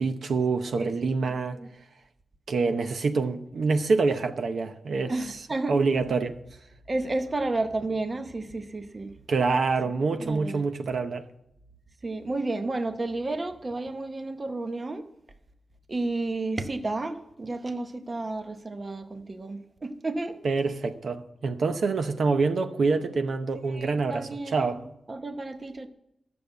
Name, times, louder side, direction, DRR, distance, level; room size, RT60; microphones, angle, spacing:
voice 1, 0.0-1.6 2.5-5.4 5.7-6.4 9.3-11.3 20.4-24.8, right 4 dB, 60° right, 0.7 m, -26 dB
voice 2, 1.3-1.7 5.1-5.8 6.9-9.1 10.2-10.6 12.0-15.0 15.9-20.4 23.6-24.7 25.1-25.9, right 2 dB, 25° right, 0.8 m, -32 dB
12.5 x 6.9 x 8.0 m
wide cardioid pair, 160°, 0 cm